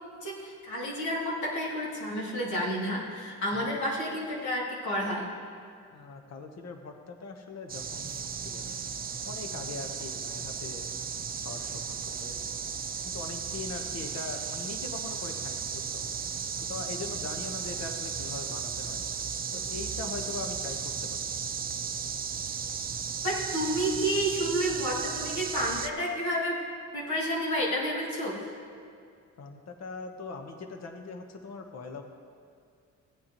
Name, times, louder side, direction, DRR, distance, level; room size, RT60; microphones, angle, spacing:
voice 1, 0.1-5.3 23.2-26.6 26.9-28.5, equal, 75° left, -5 dB, 2.8 m, -30 dB
voice 2, 5.9-8.8 9.3-10.9 11.4-12.6 13.0-16.0 16.6-19.1 19.5-21.3 29.4-32.0, left 3 dB, 60° left, 4 dB, 1.2 m, -41 dB
sound 1, 7.7-25.9, right 6 dB, 30° right, 0.5 m, -35 dB
16.0 x 8.4 x 3.0 m, 2.3 s
cardioid pair, 90°, 30 cm